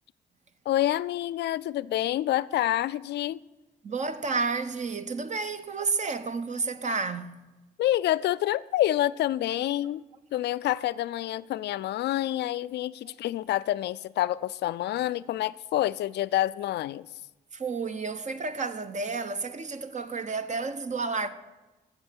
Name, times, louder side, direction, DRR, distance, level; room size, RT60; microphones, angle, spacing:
voice 1, 0.7-3.4 7.8-10.0 10.3-17.1, left 14 dB, 65° left, 0.4 m, -27 dB
voice 2, 3.8-7.4 17.5-21.3, right 4 dB, 40° right, 0.8 m, -31 dB
8.0 x 6.7 x 8.1 m
supercardioid pair, 55°, 19 cm